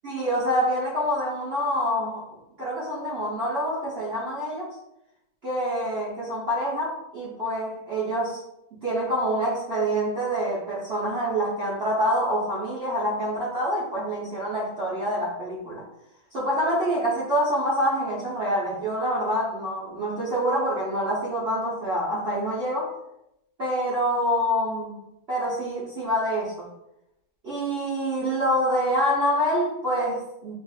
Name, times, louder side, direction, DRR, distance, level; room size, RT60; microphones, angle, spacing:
voice 1, 0.0-2.3 2.6-4.7 5.4-8.4 8.8-15.8 16.3-22.9 23.6-26.7 27.4-30.5, equal, 90° right, -8 dB, 0.5 m, -26 dB
5.4 x 2.5 x 2.4 m, 0.85 s
omnidirectional pair, 2.4 m